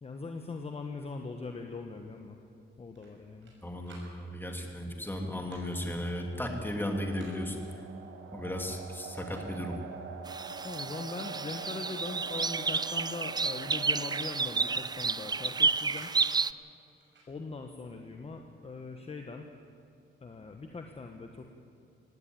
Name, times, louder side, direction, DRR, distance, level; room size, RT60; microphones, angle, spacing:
voice 1, 0.0-2.4 2.8-3.5 10.6-16.1 17.3-19.5 20.2-21.5, left 3 dB, 30° left, 4 dB, 1.2 m, -41 dB
sound 1, 3.0-3.6 3.8-4.1 5.2-5.7 6.9-7.4 8.5-8.6 9.0-9.6 11.0-11.2 11.4-12.0 12.3-12.5 12.8-12.9 13.9-14.3 15.3-16.2 17.0-17.3, right 3 dB, 65° right, 6.6 m, -56 dB
voice 2, 3.6-7.6 8.3-9.8, left 1 dB, 10° left, 2 dB, 2.8 m, -35 dB
sound 2, 5.6-16.5, right 6 dB, 90° right, 1.5 m, -46 dB
sound 3, 10.3-16.5, right 4 dB, 20° right, 0.4 m, -31 dB
18.0 x 16.0 x 9.2 m, 2.7 s
cardioid pair, 115°, 21 cm